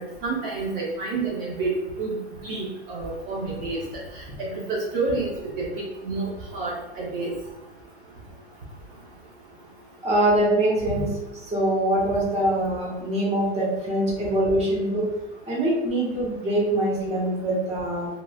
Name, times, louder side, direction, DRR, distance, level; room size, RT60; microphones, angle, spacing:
voice 1, 0.2-1.7 2.0-2.2 2.4-3.8 4.4-5.3 5.6-7.3, right 3 dB, 50° right, -3 dB, 0.8 m, -29 dB
voice 2, 10.0-11.1 11.4-15.1 15.5-18.1, right 1 dB, 20° right, -4 dB, 1.1 m, -23 dB
3.1 x 2.5 x 2.3 m, 0.94 s
hypercardioid pair, 115°, 33 cm